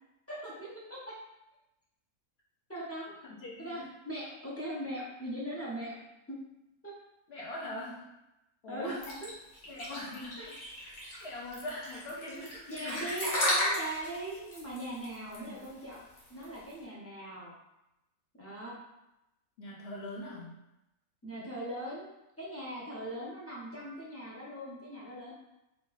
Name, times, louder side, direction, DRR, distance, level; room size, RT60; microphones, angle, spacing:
voice 1, 0.3-1.1 2.7-3.1 3.6-6.0 6.3-6.4 6.8-6.9 8.7-9.0 9.2-9.3 10.4-10.5 12.7-16.0 16.3-17.5 18.4-18.8 21.2-22.1 22.4-25.3, right 1 dB, 15° left, -7 dB, 0.5 m, -40 dB
voice 2, 3.2-3.9 7.3-8.1 8.6-9.1 9.7-10.9 11.2-13.0 15.3-15.6 19.6-20.6, left 1 dB, 55° left, -4 dB, 0.9 m, -42 dB
sound 1, 9.0-16.7, left 1 dB, 75° left, 1.5 m, -34 dB
3.0 x 2.4 x 3.9 m, 0.91 s
omnidirectional pair, 1.5 m